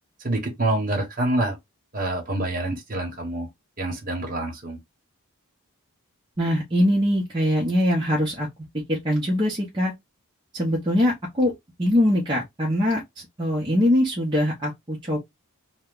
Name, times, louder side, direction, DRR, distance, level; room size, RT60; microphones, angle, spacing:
voice 1, 0.2-1.6 1.9-3.5 3.8-4.8, right 1 dB, 40° right, 1.0 m, -26 dB
voice 2, 6.4-8.5 8.7-9.9 10.5-11.5 11.8-13.0 13.4-15.2, left 1 dB, 20° right, 0.7 m, -22 dB
2.8 x 2.1 x 3.6 m
head